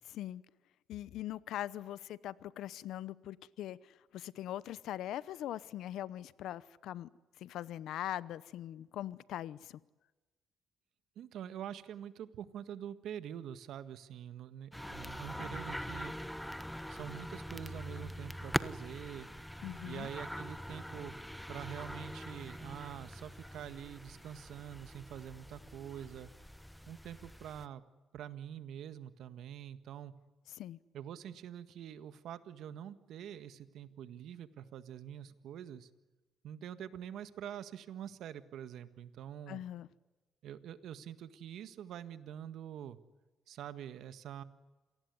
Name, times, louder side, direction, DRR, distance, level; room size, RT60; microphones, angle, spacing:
voice 1, 0.0-0.4 0.9-7.1 7.4-9.8 19.6-20.1 30.6-30.8 39.5-39.9, left 12 dB, 80° left, 0.8 m, -41 dB
voice 2, 11.1-16.1 16.9-19.3 19.8-21.1 21.5-26.3 26.9-27.8 28.1-30.1 30.9-35.9 36.4-39.6 40.4-43.0 43.5-44.4, right 10 dB, 80° right, 1.7 m, -45 dB
sound 1, 14.7-27.7, equal, 5° left, 1.1 m, -43 dB
27.5 x 19.0 x 9.7 m
cardioid pair, 90°, 0 cm